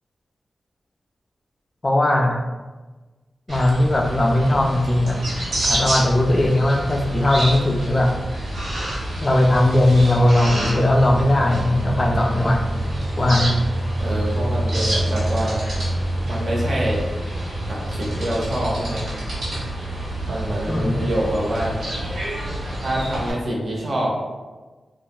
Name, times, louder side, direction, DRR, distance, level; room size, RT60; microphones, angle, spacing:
voice 1, 1.8-2.4 3.5-5.2 5.6-8.1 9.2-12.6 13.2-13.6 20.7-21.0, left 1 dB, 30° left, 1 dB, 0.3 m, -18 dB
sound 1, 3.5-23.3, right 1 dB, 90° right, 0.9 m, -27 dB
voice 2, 14.0-15.6 16.2-17.0 17.7-19.0 20.2-21.7 22.8-24.1, right 1 dB, 55° right, -3 dB, 0.6 m, -25 dB
2.3 x 2.1 x 2.9 m, 1.3 s
wide cardioid pair, 130°, 0 cm